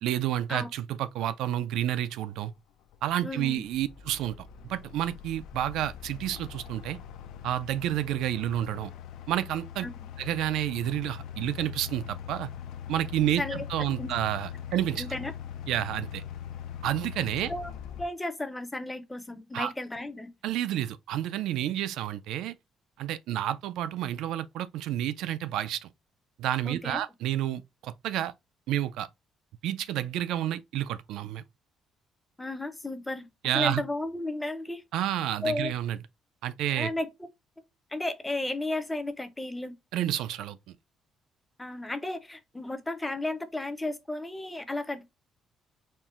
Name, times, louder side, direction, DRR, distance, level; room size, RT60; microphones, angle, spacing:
voice 1, 0.0-2.5 3.0-7.0 7.4-8.9 9.3-9.9 10.2-12.5 12.9-15.1 15.7-16.2 16.8-17.5 19.5-19.7 20.4-22.6 23.0-25.9 26.4-28.3 28.7-29.1 29.6-31.4 33.4-33.8 34.9-36.0 36.4-36.9 39.9-40.8, right 12 dB, 85° right, 0.3 m, -30 dB
sound 1, 2.3-2.4 2.9-18.1, left 9 dB, 85° left, 0.4 m, -42 dB
voice 2, 3.2-3.6 9.8-10.1 13.4-13.6 14.0-14.1 15.0-15.3 17.5-17.7 18.0-20.3 26.7-27.0 32.4-33.3 33.5-34.8 35.4-35.7 36.8-37.1 37.9-39.8 41.6-45.1, left 2 dB, 10° left, 0.5 m, -33 dB
4.3 x 2.1 x 3.6 m
cardioid pair, 165°, 0 cm